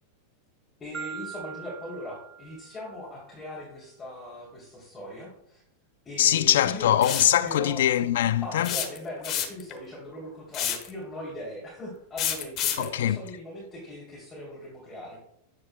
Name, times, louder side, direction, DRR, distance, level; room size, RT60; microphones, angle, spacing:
voice 1, 0.8-5.6 6.0-6.9 7.4-7.8 8.4-15.2, left 1 dB, 20° left, 3.1 m, -40 dB
Marimba xylophone, 0.9-3.1, right 7 dB, 15° right, 0.5 m, -42 dB
voice 2, 6.2-8.7 12.8-13.2, left 11 dB, 80° left, 0.4 m, -22 dB
sound 1, 7.0-7.4 8.6-9.7 10.5-10.9 12.2-12.9, left 10 dB, 40° left, 1.3 m, -29 dB
10.0 x 8.0 x 2.3 m
hypercardioid pair, 125°, 0 cm